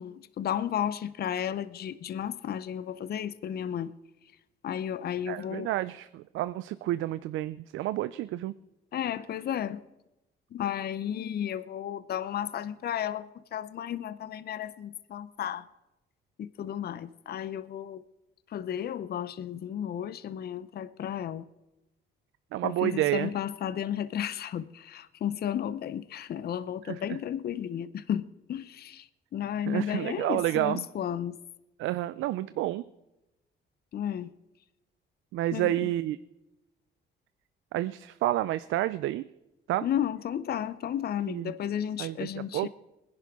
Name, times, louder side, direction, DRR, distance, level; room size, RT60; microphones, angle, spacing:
voice 1, 0.0-3.9 4.6-5.7 8.9-9.8 10.5-15.6 16.4-18.0 18.5-21.4 22.6-28.2 28.5-29.0 29.3-31.4 33.9-34.3 35.5-35.7 39.8-42.7, left 9 dB, 55° left, 15 dB, 0.6 m, -33 dB
voice 2, 5.3-8.5 22.5-23.3 26.8-27.2 29.7-30.9 31.8-32.8 35.3-36.2 37.7-39.2 39.7-39.9 41.3-41.5 42.0-42.3 42.5-42.7, right 15 dB, 80° right, 15 dB, 0.4 m, -29 dB
20.5 x 11.0 x 3.6 m, 0.95 s
cardioid pair, 90°, 20 cm